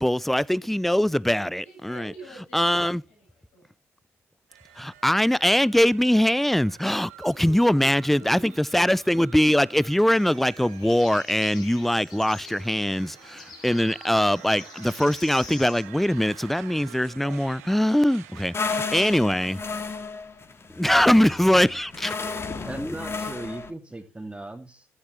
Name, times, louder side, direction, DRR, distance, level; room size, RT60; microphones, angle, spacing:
voice 1, 0.0-2.1 2.5-3.0 4.8-19.6 20.7-22.2 22.8-22.9, equal, ahead, 0.5 m, -22 dB
voice 2, 1.6-3.7 7.3-8.7 21.6-22.2, right 2 dB, 80° left, 7.6 m, -47 dB
sound 1, 4.5-18.8, right 12 dB, 80° right, 1.3 m, -49 dB
sound 2, 10.2-15.8, left 5 dB, 60° left, 5.3 m, -45 dB
sound 3, 18.5-23.7, left 4 dB, 35° left, 2.1 m, -33 dB
voice 3, 22.6-24.9, right 2 dB, 15° right, 2.6 m, -38 dB
17.5 x 13.0 x 3.2 m
figure-of-eight pair, 45°, 8 cm